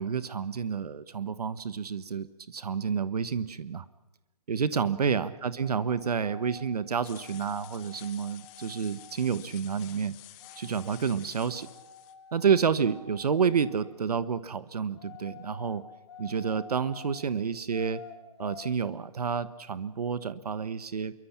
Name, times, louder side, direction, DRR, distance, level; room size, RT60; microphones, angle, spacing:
voice 1, 0.0-3.8 4.5-10.1 10.6-11.7 12.3-15.8 16.2-18.0 18.4-21.1, right 6 dB, 70° right, 14 dB, 1.3 m, -29 dB
sound 1, 5.5-6.7 7.2-9.3 10.4-11.0 11.3-13.9 14.9-17.2 17.7-18.7, left 5 dB, 40° left, 4.9 m, -49 dB
sound 2, 7.0-12.1, left 17 dB, 15° left, 0.9 m, -51 dB
28.0 x 23.5 x 5.9 m, 1.1 s
hypercardioid pair, 165°, 20 cm